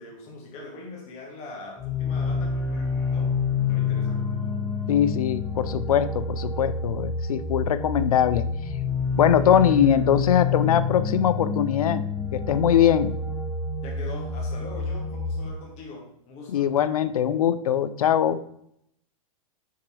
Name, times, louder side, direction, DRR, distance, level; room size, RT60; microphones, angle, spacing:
voice 1, 0.0-3.3 3.7-4.3 13.8-16.7, left 2 dB, 40° left, 0 dB, 2.1 m, -42 dB
sound 1, 1.8-15.5, left 4 dB, 15° left, 1.2 m, -28 dB
voice 2, 4.9-8.4 9.1-12.0 12.3-13.1 16.5-18.4, left 9 dB, 85° left, 14 dB, 0.5 m, -21 dB
6.6 x 4.0 x 4.7 m, 0.74 s
hypercardioid pair, 130°, 18 cm